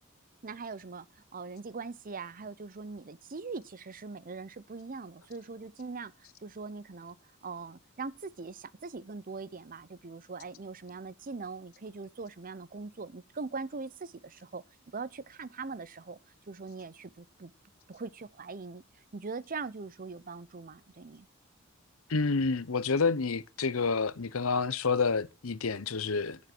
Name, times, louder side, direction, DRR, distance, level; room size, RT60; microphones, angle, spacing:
voice 1, 0.4-1.1 1.3-6.1 6.4-7.2 7.4-14.6 14.9-16.2 16.5-17.5 17.9-18.8 19.1-21.3, right 4 dB, 45° right, 0.7 m, -41 dB
voice 2, 22.1-26.4, left 4 dB, 90° left, 0.8 m, -29 dB
12.0 x 7.5 x 6.1 m
head